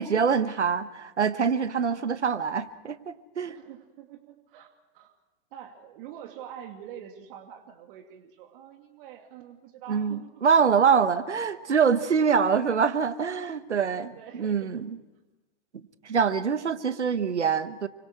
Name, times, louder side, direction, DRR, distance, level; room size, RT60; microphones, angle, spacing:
voice 1, 0.0-3.5 9.9-15.0 16.0-17.9, right 6 dB, 90° right, 13 dB, 1.4 m, -25 dB
voice 2, 3.5-5.1 5.5-10.4 12.2-12.3 13.7-14.7 16.6-17.1, right 10 dB, 50° right, 4 dB, 2.5 m, -46 dB
29.0 x 25.0 x 4.8 m, 1.1 s
hypercardioid pair, 105°, 34 cm